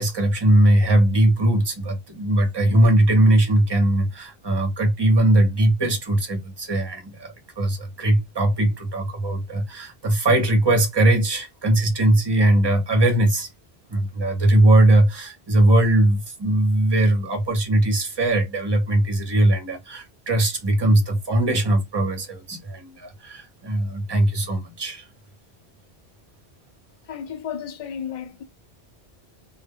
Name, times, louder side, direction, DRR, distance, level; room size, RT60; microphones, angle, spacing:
voice 1, 0.0-13.5 13.9-25.1, right 1 dB, 30° right, 0.6 m, -20 dB
voice 2, 27.1-28.4, left 8 dB, 50° left, 0.4 m, -33 dB
2.1 x 2.0 x 3.4 m
omnidirectional pair, 1.1 m